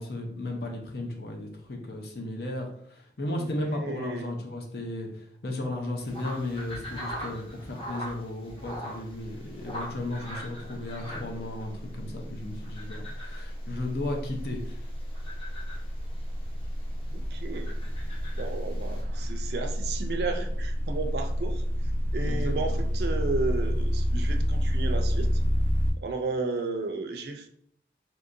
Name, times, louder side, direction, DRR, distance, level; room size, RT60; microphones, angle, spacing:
voice 1, 0.0-14.8 22.3-22.9, left 1 dB, 65° left, 2 dB, 0.7 m, -35 dB
voice 2, 3.3-4.3 17.1-17.7 18.4-21.6 22.1-25.3 26.0-27.5, right 3 dB, 70° right, 5 dB, 0.4 m, -33 dB
sound 1, 6.0-19.0, equal, 30° left, 0.8 m, -43 dB
sound 2, 9.2-9.5 9.8-25.9, equal, 10° left, 0.4 m, -29 dB
3.8 x 2.8 x 2.6 m, 0.65 s
head